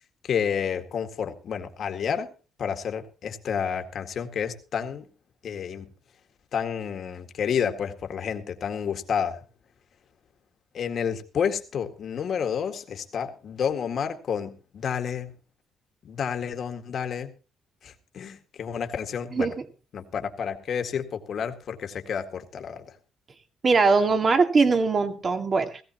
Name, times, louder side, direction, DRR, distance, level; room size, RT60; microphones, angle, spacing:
voice 1, 0.2-2.3 2.6-5.1 5.4-5.9 6.5-9.4 10.7-15.3 16.0-17.3 17.8-19.5 19.9-23.0, left 7 dB, 60° left, 6 dB, 1.9 m, -30 dB
voice 2, 23.6-25.8, right 4 dB, 40° right, 7 dB, 2.2 m, -21 dB
18.0 x 16.0 x 3.0 m, 0.33 s
cardioid pair, 90°, 0 cm